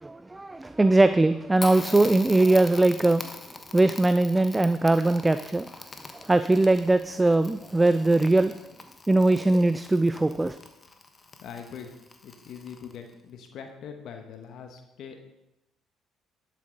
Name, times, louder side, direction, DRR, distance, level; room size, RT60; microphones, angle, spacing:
voice 1, 0.0-3.3 3.7-5.8 6.1-8.5 9.1-10.6, right 2 dB, 15° right, 12 dB, 0.4 m, -21 dB
Crackle, 1.6-13.1, left 3 dB, 30° left, 1.3 m, -43 dB
voice 2, 11.4-11.9 12.2-15.2, left 7 dB, 60° left, 5 dB, 1.2 m, -42 dB
12.0 x 7.6 x 3.9 m, 0.89 s
hypercardioid pair, 50°, 0 cm